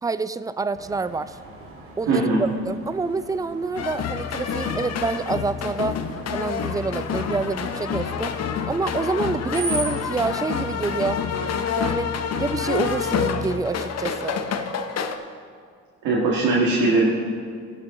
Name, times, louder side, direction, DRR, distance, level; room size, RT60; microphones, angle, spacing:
voice 1, 0.0-1.4 2.0-6.0 6.3-8.4 8.7-11.2 11.8-12.1 12.4-14.4, right 4 dB, 10° right, 14 dB, 0.4 m, -27 dB
Screech, 0.7-10.1, right 2 dB, 45° right, 2.7 m, -39 dB
voice 2, 2.1-2.4 16.0-17.1, right 3 dB, 90° right, -5 dB, 1.9 m, -20 dB
sound 1, 3.8-15.2, left 6 dB, 55° left, 0.8 m, -27 dB
18.0 x 6.6 x 3.7 m, 2.2 s
cardioid pair, 90°, 30 cm